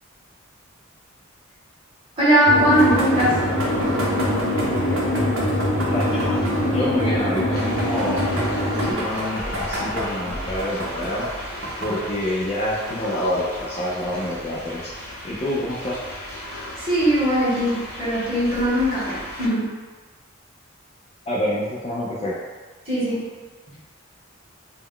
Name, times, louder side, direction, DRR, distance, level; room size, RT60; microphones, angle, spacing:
voice 1, 2.2-3.4 16.8-19.7 22.9-23.2, equal, 30° right, -9 dB, 0.9 m, -20 dB
sound 1, 2.5-8.9, left 1 dB, 55° left, 0.8 m, -23 dB
sound 2, 2.7-12.1, equal, 70° right, 0.6 m, -31 dB
voice 2, 5.9-6.4 6.7-8.2 8.8-11.3 11.8-14.9 15.2-16.1 21.3-22.4, left 1 dB, 30° left, -6 dB, 0.3 m, -27 dB
sound 3, 7.5-19.5, equal, 85° left, 0.8 m, -36 dB
2.2 x 2.0 x 3.6 m, 1.4 s
head